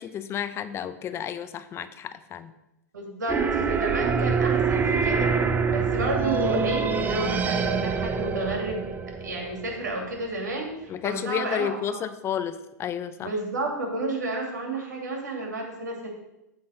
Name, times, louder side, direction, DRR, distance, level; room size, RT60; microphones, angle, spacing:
voice 1, 0.0-2.5 10.9-13.3, left 9 dB, 25° left, 12 dB, 0.5 m, -31 dB
voice 2, 2.9-8.8 9.2-10.7 11.0-12.0 13.2-16.1, right 2 dB, 85° right, 0 dB, 2.6 m, -31 dB
sound 1, 3.3-10.1, right 5 dB, 20° right, 0.6 m, -25 dB
8.2 x 4.1 x 6.4 m, 0.89 s
hypercardioid pair, 110°, 9 cm